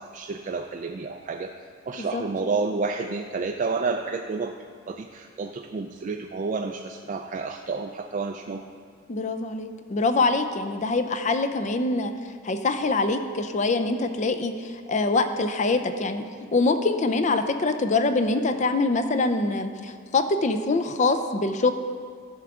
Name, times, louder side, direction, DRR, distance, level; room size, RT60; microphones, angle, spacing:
voice 1, 0.0-1.5 1.9-4.5 4.9-8.6, right 4 dB, 40° right, 3 dB, 0.3 m, -30 dB
voice 2, 9.1-12.1 12.4-16.2 16.5-21.7, left 3 dB, 35° left, 8 dB, 0.5 m, -24 dB
13.5 x 5.9 x 3.7 m, 2.1 s
head